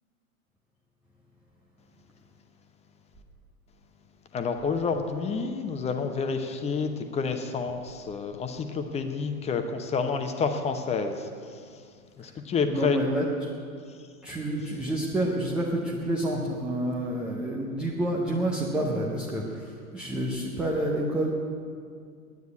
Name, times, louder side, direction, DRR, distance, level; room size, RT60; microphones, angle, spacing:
voice 1, 4.3-11.7 12.2-13.0, left 5 dB, 15° left, 7 dB, 0.8 m, -29 dB
voice 2, 12.6-13.5 14.2-21.3, right 1 dB, ahead, -4 dB, 0.3 m, -29 dB
9.9 x 9.3 x 9.3 m, 2.2 s
figure-of-eight pair, 95°, 43 cm